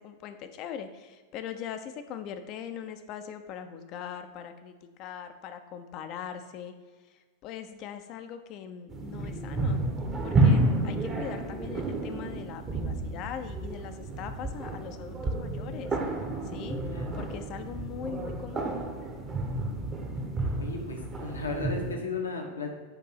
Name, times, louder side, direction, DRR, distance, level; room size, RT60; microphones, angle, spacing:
voice 1, 0.0-6.7 7.0-9.8 10.2-16.0 16.4-16.8 17.2-18.8, left 8 dB, 40° left, 8 dB, 0.5 m, -41 dB
sound 1, 8.9-21.9, right 2 dB, 20° right, 0.8 m, -30 dB
voice 2, 20.6-22.7, left 4 dB, 75° left, 2 dB, 1.0 m, -35 dB
6.8 x 2.6 x 5.7 m, 1.4 s
figure-of-eight pair, 90°, 0 cm